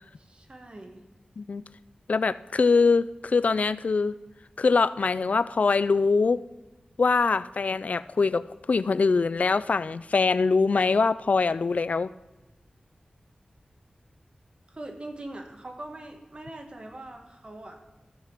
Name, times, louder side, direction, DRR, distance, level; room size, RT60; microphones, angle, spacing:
voice 1, 0.2-1.1 14.7-17.8, right 1 dB, 40° right, 4 dB, 1.4 m, -42 dB
voice 2, 2.1-4.2 4.6-6.4 7.0-12.1, left 4 dB, 60° left, 17 dB, 0.3 m, -23 dB
14.5 x 5.0 x 5.8 m, 1.1 s
wide cardioid pair, 85°, 3 cm